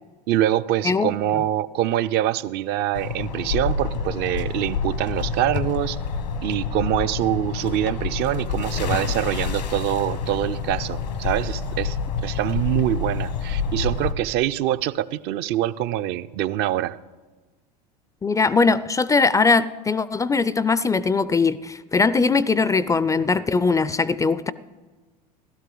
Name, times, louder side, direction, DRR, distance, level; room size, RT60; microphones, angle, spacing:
voice 1, 0.3-6.0 6.4-12.0 12.2-17.0, right 13 dB, 50° right, 13 dB, 0.5 m, -24 dB
sound 1, 2.9-14.1, left 5 dB, 80° left, 1.2 m, -28 dB
voice 2, 18.2-24.5, left 4 dB, 15° left, 17 dB, 0.4 m, -20 dB
15.5 x 12.5 x 3.9 m, 1.3 s
hypercardioid pair, 75°, 21 cm